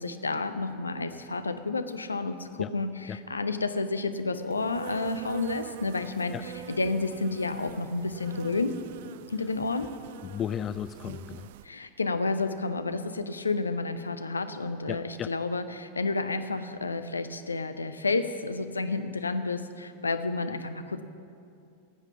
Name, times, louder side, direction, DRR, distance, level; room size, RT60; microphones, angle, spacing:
voice 1, 0.0-8.8 9.3-9.9 11.6-21.0, left 3 dB, 75° left, 10 dB, 0.7 m, -30 dB
Insect, 4.5-11.7, right 13 dB, 55° right, 0.3 m, -45 dB
voice 2, 10.3-11.5 14.9-15.3, left 9 dB, 25° left, 13 dB, 0.3 m, -34 dB
18.5 x 8.3 x 5.7 m, 2.5 s
figure-of-eight pair, 90°, 0 cm